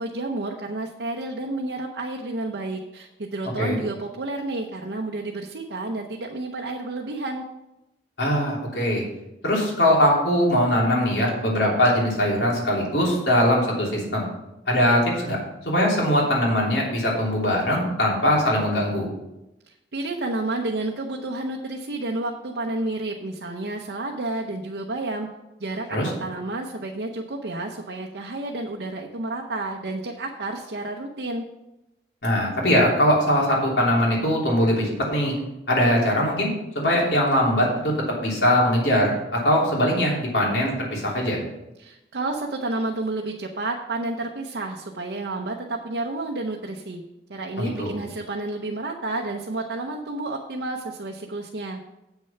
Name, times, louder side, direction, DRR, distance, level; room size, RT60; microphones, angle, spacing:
voice 1, 0.0-7.4 19.7-25.3 25.6-31.4 41.8-47.0 47.3-51.8, right 2 dB, 70° right, 1 dB, 0.8 m, -30 dB
voice 2, 8.2-9.0 9.4-14.2 14.7-15.4 15.6-19.1 25.9-26.1 32.2-35.3 35.7-36.5 36.7-37.9 38.2-41.4 47.6-48.0, equal, 75° left, -3 dB, 3.1 m, -21 dB
8.3 x 6.5 x 5.7 m, 0.95 s
head